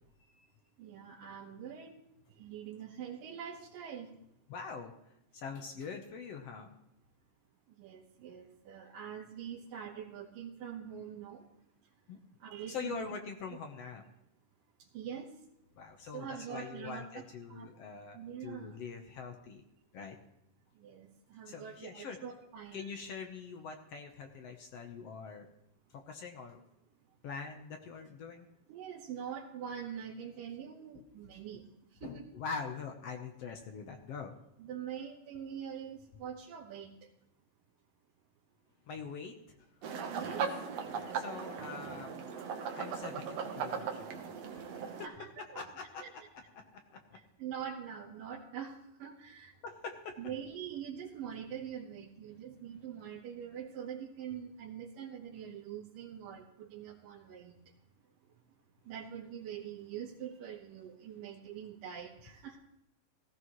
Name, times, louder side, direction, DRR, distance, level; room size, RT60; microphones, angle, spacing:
voice 1, 0.8-1.9 2.4-4.1 7.8-11.4 12.4-13.1 14.9-15.3 16.1-17.1 17.5-17.7 18.1-18.7 20.8-22.9 28.7-31.6 32.0-32.3 34.6-36.9 40.1-40.4 41.8-41.9 45.0-45.6 46.0-46.1 47.4-48.7 49.0-49.5 50.2-57.5 58.9-62.6, right 8 dB, 80° right, -4 dB, 2.9 m, -44 dB
voice 2, 4.5-4.9 5.3-6.7 12.1-12.2 12.7-14.0 15.8-19.6 19.9-20.2 21.5-22.2 22.7-25.5 25.9-26.6 27.2-28.5 30.9-31.6 32.0-34.3 38.9-39.6 41.1-42.3 42.8-45.1 45.4-47.0 49.6-50.2, left 5 dB, 60° left, 4 dB, 1.7 m, -44 dB
sound 1, 39.8-45.1, right 6 dB, 60° right, 2.0 m, -38 dB
18.0 x 14.5 x 3.1 m, 0.82 s
omnidirectional pair, 3.9 m